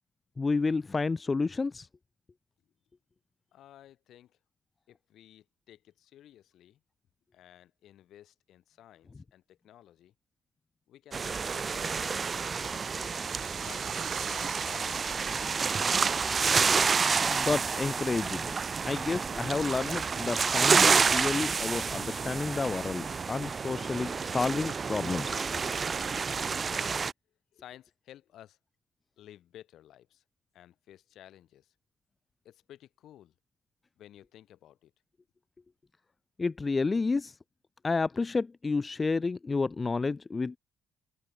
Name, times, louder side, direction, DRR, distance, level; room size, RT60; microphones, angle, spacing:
voice 1, 0.4-1.9 17.3-18.5 18.9-25.5 36.4-37.3 37.8-40.6, left 4 dB, 30° left, 0.5 m, -30 dB
voice 2, 3.5-4.4 4.9-6.8 7.3-10.1 10.9-12.3 13.6-15.7 27.5-28.6 29.2-30.2 30.5-31.7 32.4-33.3 34.0-34.9, left 12 dB, 75° left, 3.7 m, -54 dB
sound 1, 11.1-27.1, right 5 dB, 40° right, 0.5 m, -29 dB
sound 2, 12.6-18.6, right 11 dB, 75° right, 1.4 m, -47 dB
cardioid pair, 90°, 0 cm